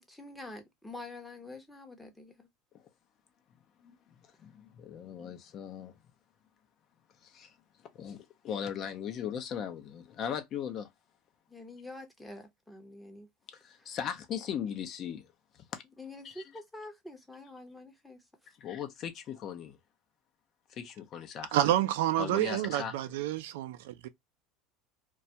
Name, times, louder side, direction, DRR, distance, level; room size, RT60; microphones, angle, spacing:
voice 1, 0.0-2.5 11.5-13.3 13.8-14.0 16.0-18.2, left 2 dB, 5° left, 0.7 m, -47 dB
voice 2, 4.4-6.0 7.2-7.5 7.9-10.9 13.5-15.8 16.2-16.4 18.6-19.8 20.7-21.6 22.2-23.1, left 8 dB, 45° left, 0.5 m, -38 dB
voice 3, 21.5-24.1, right 13 dB, 85° right, 0.4 m, -29 dB
2.2 x 2.1 x 2.6 m
supercardioid pair, 125°, 0 cm